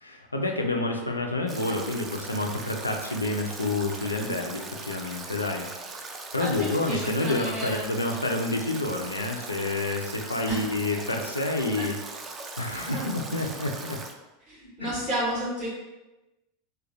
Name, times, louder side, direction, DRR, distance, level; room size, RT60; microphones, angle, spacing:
voice 1, 0.0-5.7 5.9-6.0 6.3-11.9 12.6-14.0 14.8-14.9, left 2 dB, 85° left, 2 dB, 0.4 m, -29 dB
Stream / Drip / Trickle dribble, 1.5-14.1, right 3 dB, 25° right, 0.3 m, -40 dB
voice 2, 6.4-7.9 10.5-10.6 11.7-11.8 12.9-13.5 14.5-15.7, equal, 45° right, -7 dB, 1.4 m, -32 dB
3.1 x 2.3 x 2.6 m, 1.1 s
figure-of-eight pair, 80°, 0 cm